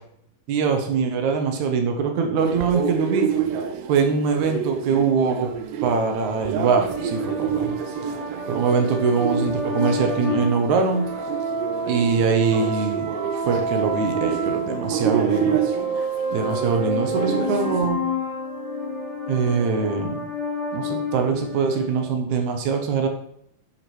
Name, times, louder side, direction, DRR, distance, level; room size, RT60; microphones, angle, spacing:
voice 1, 0.5-3.3 3.9-5.5 5.8-7.8 8.5-11.1 11.9-13.1 13.5-15.6 16.3-18.0 19.3-20.2 20.7-23.1, right 5 dB, 65° right, 4 dB, 2.0 m, -23 dB
sound 1, 2.4-17.9, right 8 dB, 85° right, 3.0 m, -29 dB
sound 2, 6.7-22.1, equal, 35° right, 2.2 m, -29 dB
11.5 x 5.0 x 4.5 m, 0.70 s
omnidirectional pair, 4.7 m